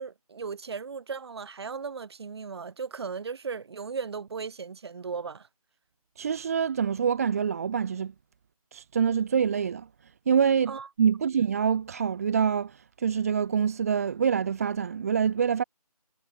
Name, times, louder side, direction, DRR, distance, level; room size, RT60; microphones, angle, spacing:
voice 1, 0.0-5.5 10.7-10.9, right 5 dB, 45° right, 5.2 m, -36 dB
voice 2, 6.2-8.1 8.7-9.9 10.3-15.6, right 7 dB, 25° right, 1.0 m, -26 dB
figure-of-eight pair, 160°, 19 cm